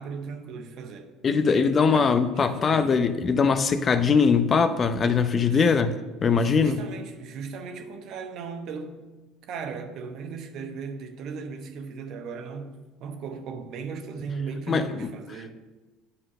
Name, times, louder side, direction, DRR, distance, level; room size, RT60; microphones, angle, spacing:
voice 1, 0.0-1.1 1.9-2.1 2.4-3.1 5.5-5.8 6.4-9.1 9.5-15.5, right 5 dB, 60° right, 1.0 m, -37 dB
voice 2, 1.2-6.8 14.7-15.1, left 5 dB, 35° left, 0.6 m, -21 dB
8.8 x 4.6 x 6.2 m
hypercardioid pair, 75°, 0 cm